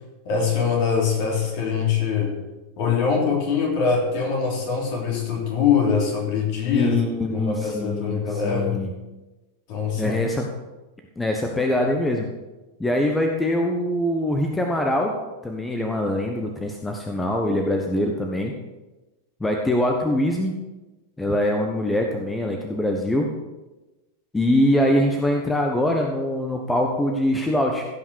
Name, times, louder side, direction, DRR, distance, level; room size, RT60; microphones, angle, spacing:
voice 1, 0.2-2.3 2.8-7.0 7.3-8.8 9.7-10.2, left 6 dB, 45° left, 0 dB, 3.2 m, -23 dB
voice 2, 6.7-8.9 10.0-10.5 11.2-12.3 12.8-15.1 15.4-18.5 19.4-20.6 21.2-23.3 24.3-27.8, left 1 dB, 10° left, 2 dB, 1.2 m, -23 dB
16.0 x 5.8 x 6.4 m, 1.1 s
figure-of-eight pair, 90°, 0 cm